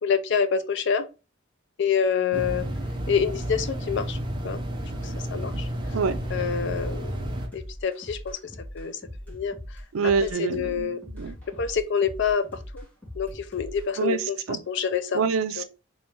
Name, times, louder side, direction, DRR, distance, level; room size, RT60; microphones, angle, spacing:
voice 1, 0.0-1.1 1.8-2.7 3.1-4.2 4.4-4.6 5.3-5.7 6.3-8.4 8.7-9.0 9.3-9.5 10.2-11.0 11.6-12.4 12.7-12.8 13.2-14.4 14.7-15.2 15.6-15.7, left 6 dB, 60° left, 0.4 m, -26 dB
sound 1, 2.3-7.5, equal, 20° right, 0.5 m, -31 dB
sound 2, 6.4-13.9, equal, 10° left, 1.5 m, -41 dB
voice 2, 9.9-11.3 14.0-14.6 15.1-15.6, right 5 dB, 85° right, 0.4 m, -26 dB
3.0 x 2.8 x 3.5 m
head